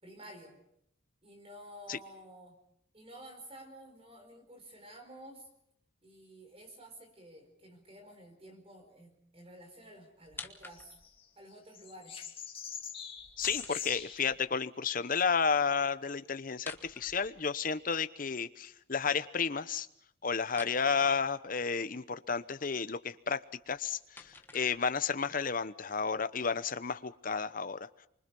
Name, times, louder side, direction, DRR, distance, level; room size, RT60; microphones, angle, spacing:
voice 1, 0.0-0.6 1.2-2.6 2.9-5.5 6.0-10.9 11.4-12.2, right 1 dB, 30° right, 6 dB, 4.7 m, -52 dB
sound 1, 10.2-11.2 13.2-14.4 16.5-17.8 20.5-20.8 23.5-25.2, left 3 dB, 10° left, 1.3 m, -50 dB
sound 2, 10.7-11.2 11.7-14.3 16.0-16.3, left 8 dB, 30° left, 2.3 m, -42 dB
voice 2, 13.4-19.9 20.2-27.9, left 5 dB, 45° left, 13 dB, 0.9 m, -32 dB
25.0 x 25.0 x 5.4 m, 0.72 s
head